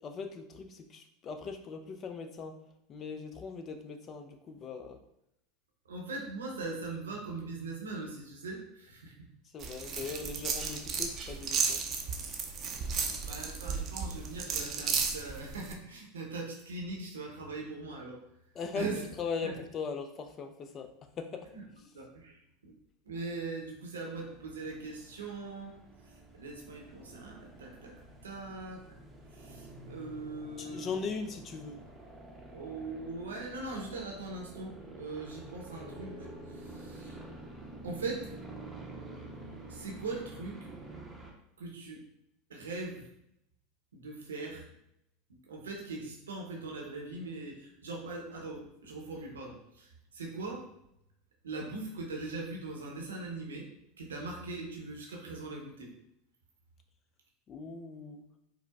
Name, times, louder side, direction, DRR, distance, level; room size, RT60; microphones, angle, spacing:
voice 1, 0.0-2.5 2.9-5.0 9.5-11.8 18.5-18.9 19.2-20.9 21.2-21.5 30.6-31.8 57.5-58.2, left 5 dB, 35° left, 6 dB, 0.4 m, -39 dB
voice 2, 5.9-9.2 13.2-18.2 18.7-19.0 19.4-19.5 21.5-21.6 21.9-22.7 23.0-25.7 26.1-27.9 28.2-29.0 29.3-30.9 32.5-36.3 36.6-37.2 37.8-38.3 39.7-40.7 41.6-42.0 42.5-43.1 43.9-44.7 45.5-50.6 51.4-53.7 54.0-55.9, right 3 dB, 90° right, 0 dB, 0.7 m, -41 dB
sound 1, 9.6-15.7, right 5 dB, 40° right, 0.5 m, -34 dB
sound 2, 24.1-41.3, right 2 dB, 10° right, 0.7 m, -48 dB
4.6 x 2.0 x 2.3 m, 0.79 s
hypercardioid pair, 90°, 0 cm